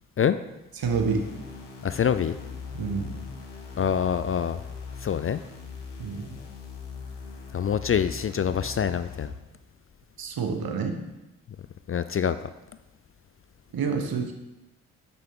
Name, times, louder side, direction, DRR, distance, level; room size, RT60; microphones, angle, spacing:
sound 1, 0.8-9.3, left 5 dB, 85° left, 1.2 m, -40 dB
voice 1, 0.8-1.2 2.7-3.2 6.0-6.4 10.2-11.0 13.7-14.3, right 5 dB, 60° right, 5 dB, 1.3 m, -28 dB
voice 2, 1.8-2.4 3.8-4.6 5.0-5.4 7.5-9.3 11.9-12.4, left 8 dB, 35° left, 12 dB, 0.4 m, -25 dB
8.5 x 6.1 x 3.7 m, 0.98 s
hypercardioid pair, 40°, 41 cm